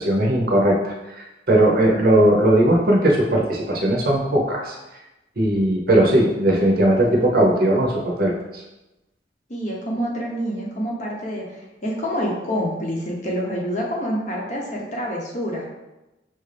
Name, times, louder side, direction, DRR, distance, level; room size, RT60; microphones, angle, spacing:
voice 1, 0.0-4.8 5.4-8.3, right 1 dB, 50° right, -1 dB, 0.7 m, -18 dB
voice 2, 9.5-15.7, equal, 40° left, -2 dB, 0.8 m, -27 dB
5.8 x 2.5 x 3.3 m, 1.0 s
head